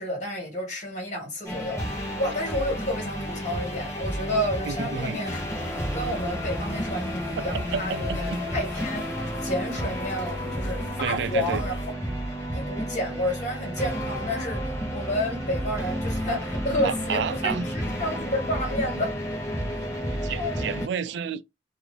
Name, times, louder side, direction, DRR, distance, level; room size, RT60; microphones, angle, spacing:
voice 1, 0.0-9.1 9.4-11.8 12.5-19.1 20.3-20.6, left 1 dB, 45° left, 1.5 m, -30 dB
sound 1, 1.5-20.9, equal, 15° left, 0.7 m, -31 dB
sound 2, 2.5-11.9, left 1 dB, 80° left, 0.8 m, -43 dB
voice 2, 4.7-5.2 7.4-8.4 11.0-11.6 16.8-17.7 19.0-19.1 20.2-21.4, right 7 dB, 75° right, 0.3 m, -31 dB
2.5 x 2.5 x 3.2 m
head